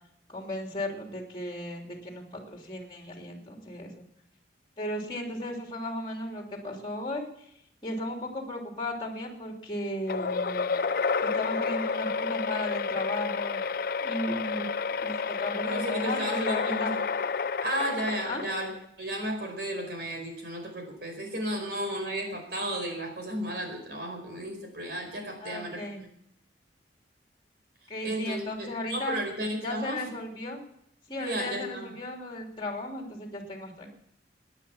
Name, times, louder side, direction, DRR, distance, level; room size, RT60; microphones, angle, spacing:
voice 1, 0.3-4.0 4.8-7.5 7.8-10.7 11.2-13.6 14.0-14.7 15.0-16.9 18.2-18.4 25.4-26.0 27.9-29.2 29.6-30.6 31.1-33.9, left 1 dB, 25° left, 2 dB, 3.1 m, -35 dB
sound 1, 10.1-18.9, left 5 dB, 50° left, 0.5 m, -30 dB
voice 2, 15.6-17.0 17.6-25.8 28.0-30.0 31.2-31.9, right 1 dB, 60° right, 3 dB, 4.8 m, -34 dB
17.5 x 10.0 x 7.2 m, 0.74 s
head